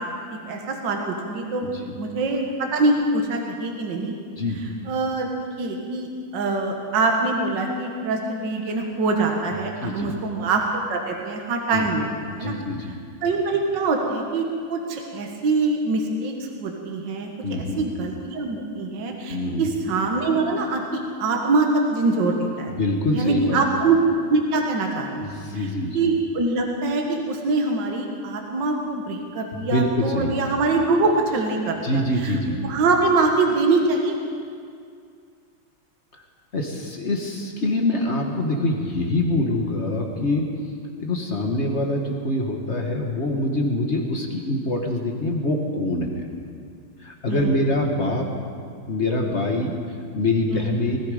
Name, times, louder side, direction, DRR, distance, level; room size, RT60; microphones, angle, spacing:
voice 1, 0.5-4.1 4.9-5.3 5.6-12.5 13.2-22.7 23.1-25.3 25.5-25.7 25.9-34.2 47.3-47.6 50.5-50.7, right 3 dB, 60° right, 1 dB, 2.0 m, -24 dB
voice 2, 9.8-10.1 11.7-11.9 12.3-12.9 17.4-17.8 19.3-19.7 22.7-23.6 25.2-26.0 29.5-30.3 31.8-32.6 36.5-40.5 41.0-46.2 47.0-48.3 48.9-49.7 50.1-51.0, left 1 dB, 35° left, 2 dB, 1.4 m, -24 dB
20.0 x 14.0 x 5.0 m, 2.2 s
omnidirectional pair, 2.3 m